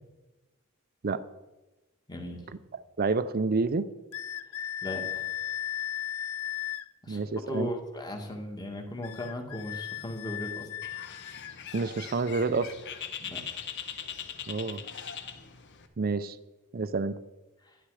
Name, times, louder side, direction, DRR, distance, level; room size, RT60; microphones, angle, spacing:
voice 1, 2.1-2.4 4.8-5.2 7.0-10.7 13.2-13.6 17.6-17.8, left 1 dB, 20° left, 3 dB, 1.9 m, -37 dB
voice 2, 3.0-3.9 7.1-7.7 11.7-12.7 14.5-14.8 16.0-16.4 16.7-17.2, right 4 dB, 45° right, 14 dB, 0.5 m, -28 dB
sound 1, 4.1-6.9 9.0-11.6, left 11 dB, 75° left, 0.5 m, -36 dB
Bird, 10.8-15.9, left 7 dB, 55° left, 1.0 m, -41 dB
11.5 x 11.0 x 4.9 m, 1.1 s
head